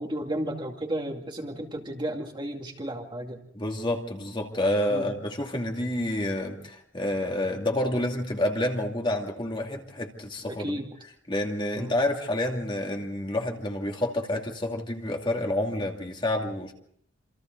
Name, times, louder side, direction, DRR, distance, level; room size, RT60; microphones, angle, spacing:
voice 1, 0.0-3.4 4.9-5.1 10.5-10.9 11.7-11.9, right 1 dB, 25° right, 2 dB, 2.3 m, -33 dB
voice 2, 3.5-10.8 11.3-16.7, left 1 dB, 25° left, 1 dB, 2.6 m, -29 dB
27.5 x 26.5 x 4.0 m, 0.65 s
head